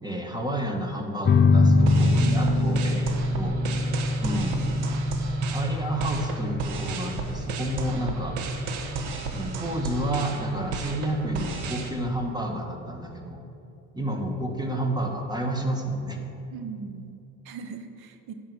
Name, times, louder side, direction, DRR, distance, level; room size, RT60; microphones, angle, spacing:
voice 1, 0.0-3.6 4.2-4.8 5.5-8.4 9.3-13.4 13.9-16.2, right 1 dB, 10° right, 2 dB, 1.7 m, -30 dB
sound 1, 1.2-12.3, left 2 dB, 30° left, 0.6 m, -25 dB
sound 2, 1.8-11.9, right 4 dB, 90° right, 1.3 m, -34 dB
voice 2, 2.0-2.4 16.5-18.3, right 5 dB, 60° right, 8 dB, 1.2 m, -39 dB
10.5 x 5.8 x 8.2 m, 2.8 s
supercardioid pair, 85°, 42 cm